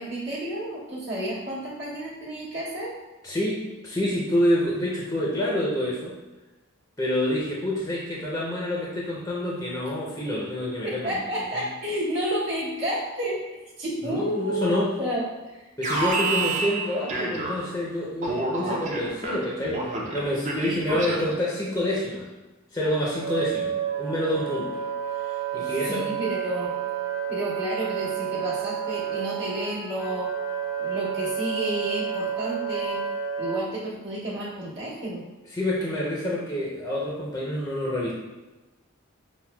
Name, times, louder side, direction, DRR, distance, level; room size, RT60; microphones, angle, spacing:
voice 1, 0.0-2.9 10.8-13.4 13.8-15.7 20.9-21.0 25.9-26.7 27.3-30.3 30.8-33.0 33.4-35.2, right 1 dB, 70° right, -8 dB, 1.2 m, -31 dB
voice 2, 3.2-6.1 7.0-11.2 11.5-11.6 14.0-14.9 15.8-19.8 20.1-22.3 22.7-24.7 25.3-26.1 35.5-38.1, left 1 dB, 15° left, -5 dB, 0.5 m, -27 dB
Alarm, 15.8-17.8 18.2-21.5, right 2 dB, 35° right, 0.5 m, -29 dB
Wind instrument woodwind instrument, 22.8-33.6, right 8 dB, 90° left, 0.6 m, -30 dB
5.7 x 2.1 x 2.2 m, 1.1 s
head